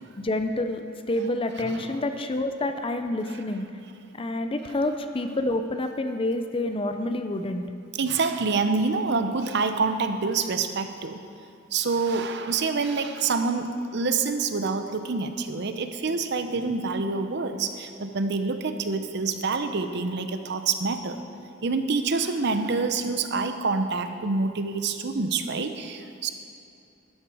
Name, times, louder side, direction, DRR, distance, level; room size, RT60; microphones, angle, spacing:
voice 1, 0.2-3.7 4.1-7.6, left 2 dB, 25° left, 7 dB, 0.5 m, -28 dB
voice 2, 1.6-2.0 8.0-11.2 11.7-21.2 21.6-26.3, right 4 dB, 60° right, 8 dB, 0.7 m, -27 dB
12.0 x 10.0 x 4.8 m, 2.5 s
head